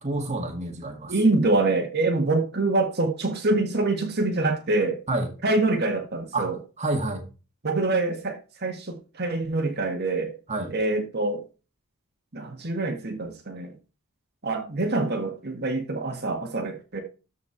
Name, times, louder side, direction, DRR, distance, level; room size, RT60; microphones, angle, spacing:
voice 1, 0.0-1.1 5.1-5.3 6.3-6.5 6.8-7.2 10.5-10.7, right 2 dB, 30° right, 1.8 m, -28 dB
voice 2, 1.1-5.0 5.4-6.6 7.6-10.3 10.7-11.4 12.3-13.7 14.4-17.0, right 2 dB, 50° right, 1.7 m, -25 dB
13.5 x 4.8 x 4.5 m
head